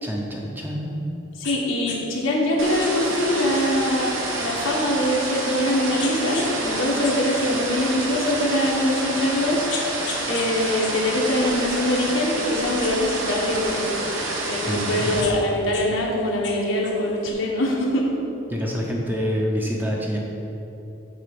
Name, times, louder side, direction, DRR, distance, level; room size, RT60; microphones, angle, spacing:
voice 1, 0.0-1.1 14.7-15.2 18.5-20.2, equal, 10° right, -1 dB, 0.8 m, -27 dB
voice 2, 1.4-10.0 10.3-14.1 14.4-18.1, left 1 dB, 80° left, -2 dB, 1.5 m, -23 dB
sound 1, 1.4-1.6 1.9-2.0 2.8-5.5 6.0-6.5 6.9-8.2 8.8-8.9 9.4-10.5 10.8-12.4 12.8-14.1 14.8-15.9 16.2-17.3, left 5 dB, 55° left, 1.0 m, -37 dB
sound 2, 2.6-15.2, right 2 dB, 75° right, 1.3 m, -28 dB
6.6 x 5.2 x 6.8 m, 3.0 s
head